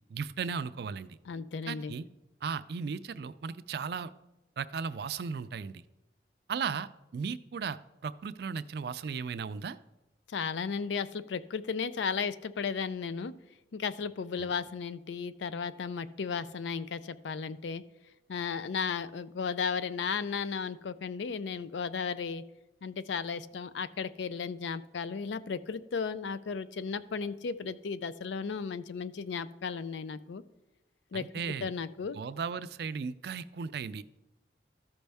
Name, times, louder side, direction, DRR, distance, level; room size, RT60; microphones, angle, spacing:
voice 1, 0.1-1.2 1.7-2.0 2.4-4.1 4.6-5.8 6.5-9.8 14.4-14.5 31.1-31.7 32.1-34.0, right 5 dB, 60° right, 14 dB, 0.3 m, -36 dB
voice 2, 1.3-1.9 10.3-13.3 13.7-17.8 18.3-22.4 22.8-30.4 31.1-31.3 31.6-32.2, left 5 dB, 85° left, 15 dB, 0.4 m, -35 dB
13.5 x 5.3 x 3.4 m, 0.97 s
head